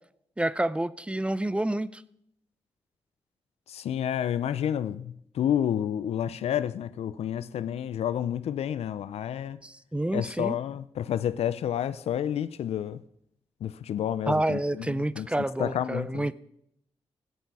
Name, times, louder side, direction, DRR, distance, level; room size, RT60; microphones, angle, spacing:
voice 1, 0.4-2.0 9.6-10.6 14.3-16.3, right 1 dB, 10° right, 0.6 m, -28 dB
voice 2, 3.7-9.6 10.1-13.0 13.6-16.3, left 10 dB, 90° left, 0.4 m, -30 dB
17.5 x 8.3 x 4.7 m
cardioid pair, 75°, 10 cm